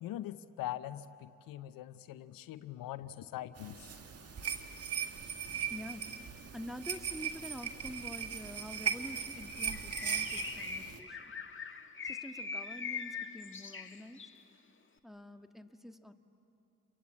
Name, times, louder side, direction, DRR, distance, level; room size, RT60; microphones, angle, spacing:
voice 1, 0.0-3.8, left 13 dB, 75° left, 13 dB, 0.8 m, -42 dB
sound 1, 3.6-11.0, right 7 dB, 45° right, 2.0 m, -38 dB
voice 2, 5.7-6.1 6.5-11.3 12.0-14.3 15.0-16.1, equal, ahead, 6 dB, 1.7 m, -47 dB
Bird, 9.5-14.4, left 5 dB, 35° left, 1.6 m, -42 dB
29.5 x 23.0 x 8.6 m, 2.6 s
supercardioid pair, 50°, 34 cm